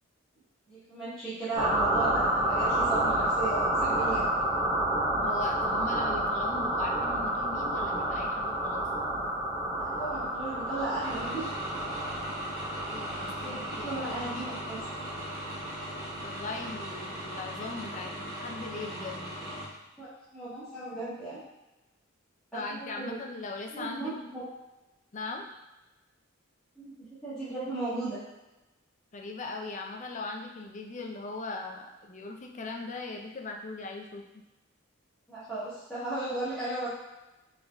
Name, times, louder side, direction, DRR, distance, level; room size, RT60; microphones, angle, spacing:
voice 1, 0.7-4.2 9.7-11.6 13.3-14.8 20.0-21.4 22.5-23.1 23.7-24.4 26.7-26.9 27.2-28.2 35.3-36.9, right 2 dB, 5° left, -15 dB, 1.2 m, -35 dB
sound 1, 1.5-17.8, right 1 dB, 25° right, 1.2 m, -30 dB
voice 2, 5.2-8.9 12.8-14.0 16.0-19.4 22.5-24.1 25.1-25.4 29.1-34.2, left 3 dB, 35° left, 2 dB, 0.4 m, -39 dB
sound 2, 11.0-19.7, equal, 45° right, 1.4 m, -39 dB
4.5 x 3.7 x 2.2 m, 1.0 s
head